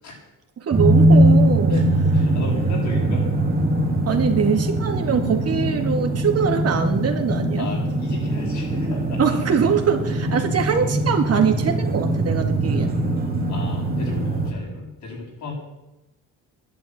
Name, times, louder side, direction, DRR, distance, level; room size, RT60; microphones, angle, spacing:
voice 1, 0.6-1.8 4.1-7.7 9.2-13.0, right 6 dB, 55° right, 4 dB, 2.2 m, -22 dB
sound 1, 0.7-14.5, right 1 dB, 30° right, 2.5 m, -21 dB
voice 2, 2.1-3.3 7.6-9.4 13.5-15.5, left 3 dB, 75° left, -1 dB, 7.6 m, -34 dB
11.5 x 11.0 x 9.4 m, 0.97 s
cardioid pair, 90°, 30 cm